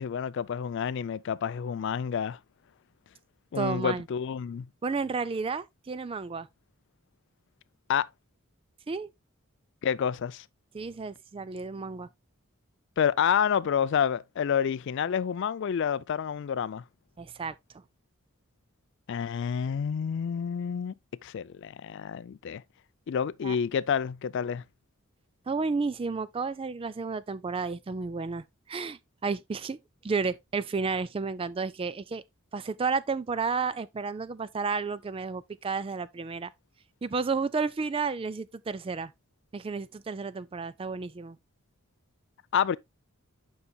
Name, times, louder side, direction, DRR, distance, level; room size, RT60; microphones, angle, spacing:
voice 1, 0.0-2.4 3.5-4.7 7.9-8.1 9.8-10.4 13.0-16.8 19.1-20.9 21.2-22.6 23.1-24.6 42.5-42.8, left 7 dB, 55° left, 0.3 m, -29 dB
voice 2, 3.6-4.1 4.8-6.5 8.9-9.1 10.7-12.1 17.2-17.5 23.4-23.6 25.5-29.8 30.0-32.2 32.5-36.5 37.0-39.1 39.5-41.4, right 4 dB, 25° right, 0.3 m, -32 dB
9.6 x 5.6 x 2.2 m
head